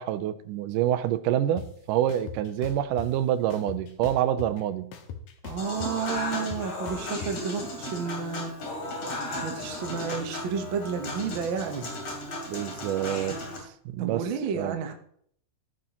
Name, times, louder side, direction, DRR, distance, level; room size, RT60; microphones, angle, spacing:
voice 1, 0.0-4.9 12.5-13.4 13.9-14.2 14.5-14.7, right 11 dB, 85° right, 12 dB, 2.2 m, -27 dB
sound 1, 1.6-1.7 2.1-3.1 3.5-4.6 4.9-7.3, left 8 dB, 80° left, 2.7 m, -39 dB
voice 2, 5.4-8.5 9.4-11.9 14.0-14.9, right 6 dB, 60° right, 5 dB, 1.3 m, -31 dB
Human voice / Acoustic guitar / Piano, 5.6-13.6, left 1 dB, 60° left, 4.1 m, -35 dB
15.0 x 9.2 x 3.0 m, 0.64 s
omnidirectional pair, 3.7 m